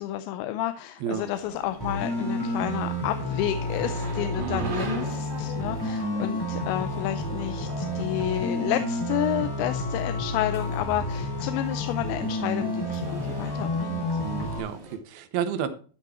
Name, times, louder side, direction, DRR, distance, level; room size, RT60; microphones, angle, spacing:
voice 1, 0.0-14.0, left 13 dB, 85° left, 2.9 m, -30 dB
sound 1, 1.1-15.0, right 4 dB, 45° right, 4.1 m, -41 dB
sound 2, 1.8-14.6, left 1 dB, 5° left, 2.4 m, -30 dB
voice 2, 4.4-4.7 14.2-15.7, right 9 dB, 75° right, 2.5 m, -31 dB
12.0 x 6.3 x 4.3 m
omnidirectional pair, 5.0 m